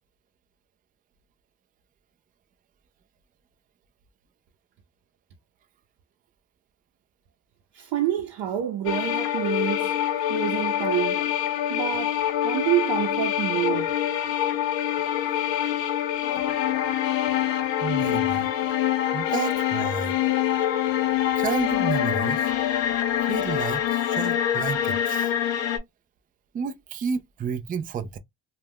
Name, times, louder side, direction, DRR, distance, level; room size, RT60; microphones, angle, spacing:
voice 1, 7.7-9.9 10.3-11.3 11.7-13.9, right 11 dB, 65° right, 0.7 m, -27 dB
sound 1, 8.9-25.8, left 11 dB, 75° left, 0.8 m, -25 dB
voice 2, 17.8-18.5 19.1-20.2 21.4-22.5 23.3-25.3 26.5-28.2, right 6 dB, 20° right, 0.3 m, -31 dB
2.3 x 2.1 x 3.3 m
supercardioid pair, 85°, 45 cm